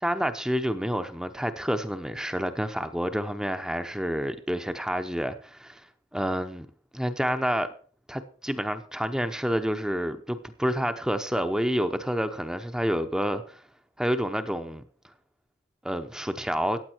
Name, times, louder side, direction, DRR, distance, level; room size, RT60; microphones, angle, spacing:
voice 1, 0.0-5.9 6.1-6.6 6.9-7.7 8.1-13.6 14.0-14.8 15.8-16.8, equal, 5° right, 0.8 m, -28 dB
15.5 x 9.3 x 4.5 m
head